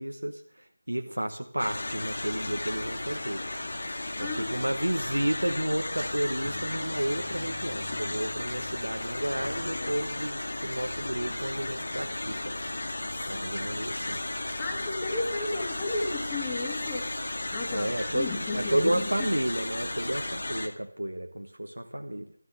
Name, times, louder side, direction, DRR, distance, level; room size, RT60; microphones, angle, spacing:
voice 1, 0.0-3.5 4.2-12.6 13.3-14.2 17.7-22.3, right 1 dB, 90° right, 5 dB, 1.1 m, -32 dB
sound 1, 1.6-20.7, left 2 dB, 60° left, 2.2 m, -34 dB
voice 2, 3.9-4.7 14.6-17.1 17.5-19.3, left 2 dB, 15° left, 0 dB, 2.7 m, -34 dB
sound 2, 6.4-10.6, left 1 dB, 30° left, 2.1 m, -51 dB
13.5 x 9.8 x 8.3 m, 0.64 s
figure-of-eight pair, 165°, 0 cm